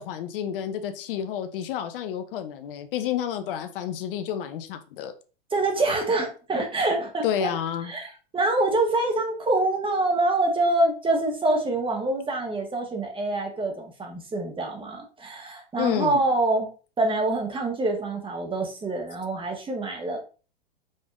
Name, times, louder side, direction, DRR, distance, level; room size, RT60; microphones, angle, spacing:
voice 1, 0.0-5.1 7.2-7.9 15.7-16.2, left 9 dB, 65° left, 0.7 m, -30 dB
voice 2, 5.5-7.5 7.8-16.7 17.0-20.2, right 2 dB, 15° right, 1.3 m, -25 dB
5.3 x 3.4 x 2.5 m
hypercardioid pair, 105°, 30 cm